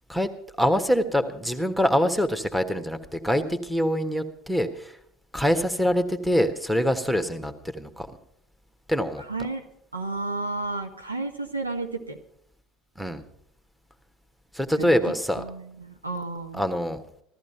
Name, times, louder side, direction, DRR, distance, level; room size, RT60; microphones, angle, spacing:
voice 1, 0.6-5.0 5.3-8.1 8.9-9.2 13.0-13.2 14.5-15.4 16.5-17.0, equal, 5° right, 8 dB, 1.5 m, -24 dB
voice 2, 9.3-9.6 9.9-12.2 14.8-14.9 15.4-16.6, right 3 dB, 90° right, 4 dB, 1.3 m, -32 dB
15.0 x 14.0 x 5.6 m, 0.68 s
figure-of-eight pair, 70°, 0 cm